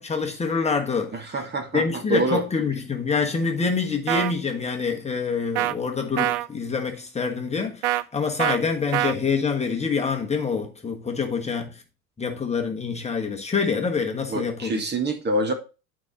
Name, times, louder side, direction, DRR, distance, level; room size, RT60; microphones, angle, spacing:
voice 1, 0.0-1.4 1.7-11.8 12.2-14.8, left 5 dB, 15° left, 1.3 m, -26 dB
voice 2, 1.1-1.8 2.1-2.4 14.3-15.5, right 1 dB, 25° right, 1.5 m, -25 dB
sound 1, 4.1-4.3 5.6-5.7 6.2-6.5 7.8-8.0 8.4-8.6 8.9-9.1, right 15 dB, 55° right, 0.6 m, -24 dB
8.9 x 5.2 x 4.1 m
hypercardioid pair, 85°, 42 cm